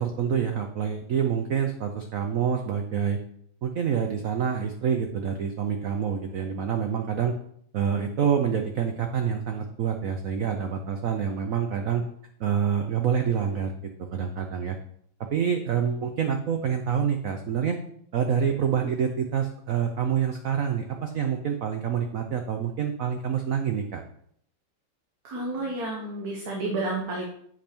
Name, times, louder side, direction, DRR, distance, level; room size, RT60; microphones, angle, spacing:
voice 1, 0.0-3.2 3.6-7.4 7.7-12.0 12.4-13.7 14.1-14.8 15.3-17.8 18.1-24.0, right 7 dB, 85° right, 5 dB, 0.7 m, -27 dB
voice 2, 25.2-27.2, right 2 dB, 50° right, -1 dB, 1.5 m, -30 dB
8.0 x 5.4 x 4.4 m, 0.66 s
omnidirectional pair, 2.3 m